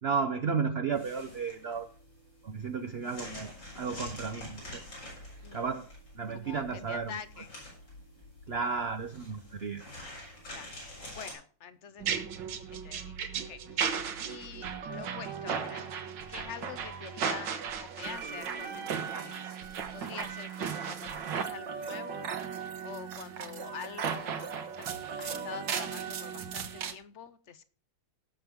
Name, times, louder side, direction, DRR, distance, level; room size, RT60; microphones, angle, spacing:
voice 1, 0.0-1.9 2.4-4.8 5.5-5.9 6.2-7.2 8.5-9.8, right 5 dB, 55° right, 0.7 m, -33 dB
sound 1, 0.9-11.3, left 1 dB, 85° left, 7.7 m, -47 dB
voice 2, 6.3-7.6 10.5-10.7 11.2-12.1 12.7-13.2 13.5-13.9 14.3-15.9 16.3-19.5 19.9-22.3 22.8-24.9 25.2-27.6, left 7 dB, 55° left, 0.9 m, -45 dB
sound 2, 12.0-26.9, right 7 dB, 75° right, 1.8 m, -36 dB
18.0 x 7.4 x 3.6 m
omnidirectional pair, 2.0 m